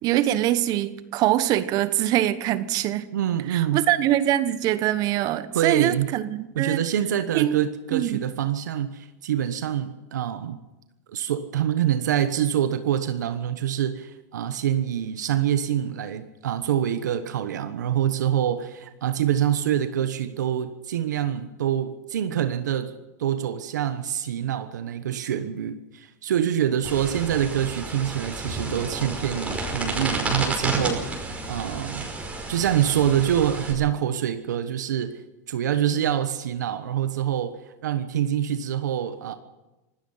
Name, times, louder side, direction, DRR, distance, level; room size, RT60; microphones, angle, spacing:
voice 1, 0.0-3.1 3.5-6.8 7.3-7.6 7.9-8.2, right 13 dB, 45° right, 1.2 m, -23 dB
voice 2, 3.1-3.8 5.5-6.1 6.5-10.6 11.1-22.9 23.2-32.1 32.5-35.2 35.5-39.3, right 10 dB, 85° right, 1.2 m, -25 dB
sound 1, 26.8-33.7, right 2 dB, 15° right, 5.4 m, -31 dB
25.5 x 18.0 x 5.7 m
hypercardioid pair, 125°, 9 cm